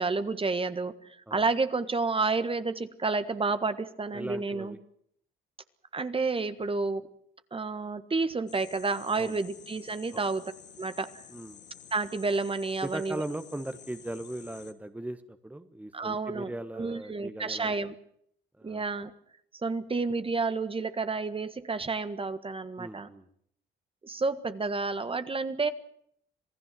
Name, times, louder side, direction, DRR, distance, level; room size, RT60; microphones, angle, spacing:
voice 1, 0.0-4.8 5.9-7.1 7.5-10.5 10.8-11.1 11.9-13.2 15.9-17.9 18.6-19.1 19.6-23.1 24.0-25.7, right 3 dB, 25° right, 12 dB, 1.6 m, -30 dB
voice 2, 4.1-4.8 9.1-9.4 10.1-10.3 11.3-11.6 12.8-17.7 18.6-18.8 22.8-23.3, right 1 dB, 5° right, 10 dB, 1.4 m, -39 dB
sound 1, 8.5-14.7, left 8 dB, 60° left, 2.2 m, -51 dB
27.0 x 17.0 x 7.7 m, 0.67 s
cardioid pair, 90°, 20 cm